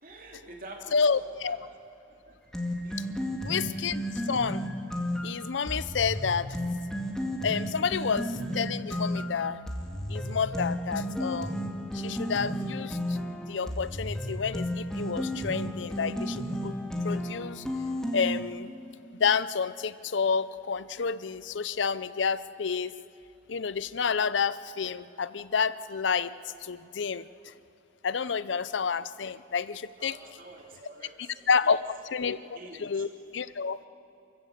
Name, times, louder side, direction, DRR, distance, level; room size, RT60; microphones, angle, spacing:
voice 1, 0.0-1.6 2.1-2.4 2.8-3.2 3.7-3.9 30.0-31.8 32.2-33.0, right 2 dB, 45° right, 0 dB, 3.1 m, -48 dB
voice 2, 0.9-1.6 3.4-4.6 5.2-6.6 7.4-9.6 10.1-11.6 11.9-13.2 13.5-16.7 17.0-17.6 18.1-18.7 19.2-22.9 23.5-26.3 26.6-27.5 28.0-30.2 31.5-31.8 32.1-32.4 32.8-33.8, left 6 dB, 75° left, 16 dB, 0.6 m, -29 dB
sound 1, 2.5-18.4, equal, 5° left, 2.1 m, -33 dB
28.5 x 15.0 x 8.0 m, 2.8 s
head